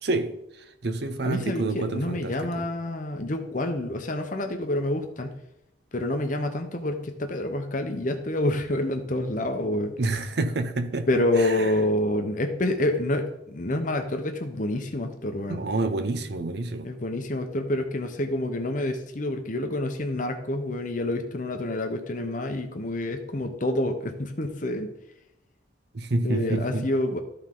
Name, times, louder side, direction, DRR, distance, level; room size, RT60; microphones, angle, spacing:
voice 1, 0.0-2.7 10.0-11.8 15.5-16.9 25.9-26.9, right 2 dB, 60° right, 0.7 m, -29 dB
voice 2, 1.2-5.4 5.9-9.9 11.1-15.6 16.8-24.9 26.2-27.2, left 1 dB, 45° left, 0.9 m, -28 dB
13.0 x 4.4 x 3.8 m
head